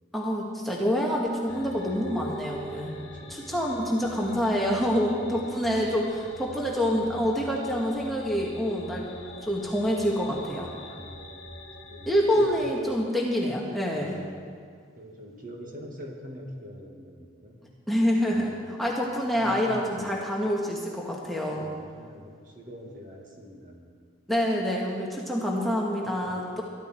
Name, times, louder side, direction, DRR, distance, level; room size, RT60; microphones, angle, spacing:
voice 1, 0.1-2.9 3.3-9.0 9.4-10.7 12.1-14.2 17.9-21.7 24.3-26.6, equal, ahead, -3 dB, 1.5 m, -27 dB
sound 1, 1.5-12.7, equal, 65° left, 2.0 m, -44 dB
voice 2, 3.0-3.4 5.0-5.9 10.8-11.5 11.8-12.5 13.9-14.4 15.0-17.6 18.3-18.7 19.3-20.2 21.5-23.9 26.0-26.4, equal, 45° right, 0 dB, 2.1 m, -44 dB
22.5 x 12.0 x 4.5 m, 2.1 s
head